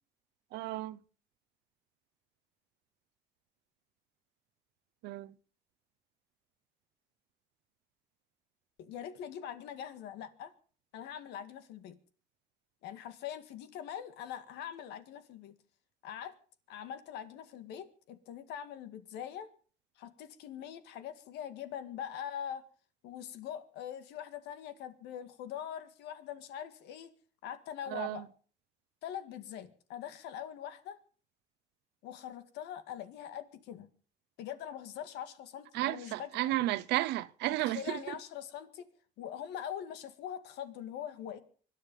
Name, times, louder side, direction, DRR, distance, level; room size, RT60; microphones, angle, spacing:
voice 1, 0.5-1.0 5.0-5.3 27.9-28.3 35.7-38.1, right 17 dB, 85° right, 0.8 m, -33 dB
voice 2, 8.8-10.5 10.9-12.0 12.8-15.5 16.0-16.3 16.7-19.5 20.0-22.6 23.0-27.1 27.4-28.2 29.0-31.0 32.0-33.9 34.4-36.7 37.5-38.9 39.2-41.4, left 9 dB, 90° left, 1.9 m, -43 dB
25.0 x 10.0 x 5.4 m
cardioid pair, 110°, 17 cm